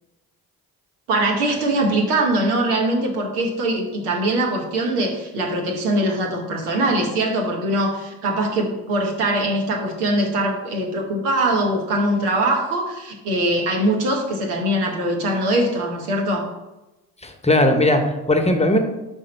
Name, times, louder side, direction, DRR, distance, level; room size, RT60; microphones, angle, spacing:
voice 1, 1.1-16.5, right 1 dB, 80° right, 1 dB, 1.3 m, -22 dB
voice 2, 17.2-18.8, left 1 dB, 15° left, 5 dB, 1.0 m, -18 dB
5.4 x 3.6 x 5.4 m, 1.0 s
hypercardioid pair, 45°, 47 cm